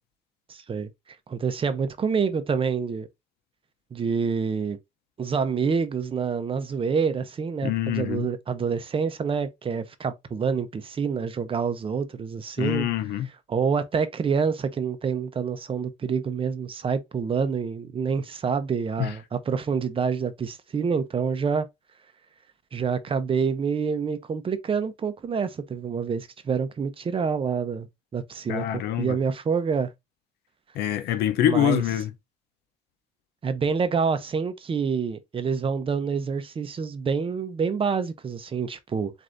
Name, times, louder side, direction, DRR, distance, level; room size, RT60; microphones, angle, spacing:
voice 1, 0.5-0.9 1.3-3.1 3.9-4.8 5.2-12.9 13.5-21.7 22.7-27.9 28.1-29.9 31.4-31.8 33.4-39.1, right 6 dB, 30° right, 0.7 m, -27 dB
voice 2, 7.6-8.3 12.6-13.3 19.0-19.1 28.5-29.2 30.7-32.1, left 12 dB, 75° left, 0.7 m, -25 dB
7.6 x 2.6 x 2.6 m
cardioid pair, 110°, 17 cm